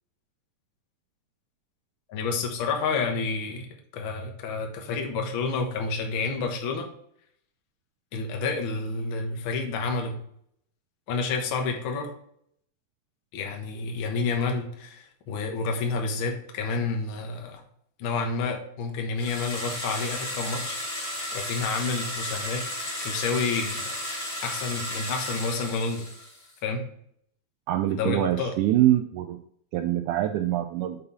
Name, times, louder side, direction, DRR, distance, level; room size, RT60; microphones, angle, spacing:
voice 1, 2.1-3.7 3.9-6.9 8.1-10.2 11.1-12.1 13.3-17.6 18.0-20.8 21.3-22.6 23.0-23.9 24.4-26.1 26.6-26.8 27.9-28.6, left 4 dB, 65° left, 3 dB, 1.2 m, -29 dB
sound 1, 19.2-26.5, left 1 dB, 35° left, 0.9 m, -34 dB
voice 2, 27.7-29.4 29.7-31.0, right 13 dB, 85° right, 7 dB, 1.8 m, -24 dB
6.7 x 5.5 x 4.0 m, 0.68 s
omnidirectional pair, 4.0 m